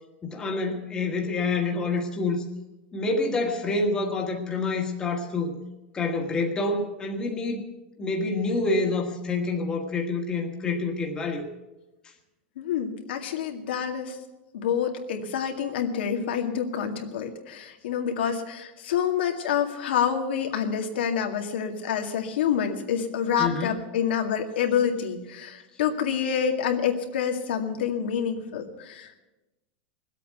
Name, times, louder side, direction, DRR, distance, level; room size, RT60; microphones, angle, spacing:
voice 1, 0.2-2.4 2.9-5.6 5.9-7.7 8.0-11.5 23.4-23.7, left 3 dB, 15° left, 2 dB, 1.5 m, -27 dB
voice 2, 12.6-14.2 14.5-29.2, left 8 dB, 90° left, 3 dB, 2.1 m, -27 dB
19.5 x 8.3 x 8.1 m, 1.0 s
supercardioid pair, 170°, 6 cm